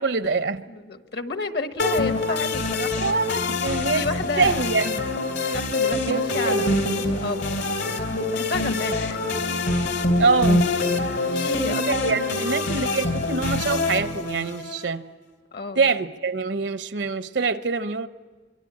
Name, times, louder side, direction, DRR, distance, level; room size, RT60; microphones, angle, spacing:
voice 1, 0.0-0.6 3.0-4.1 4.4-5.0 6.1-6.7 10.2-10.7 11.7-15.0 15.7-18.1, right 4 dB, 75° right, 12 dB, 0.9 m, -25 dB
voice 2, 0.7-3.2 3.9-4.7 5.5-7.7 8.3-9.2 11.3-12.6 15.5-15.8, left 3 dB, 60° left, 8 dB, 1.3 m, -31 dB
sound 1, 1.8-14.8, left 2 dB, 80° left, 3.1 m, -25 dB
24.0 x 24.0 x 8.6 m, 1.4 s
head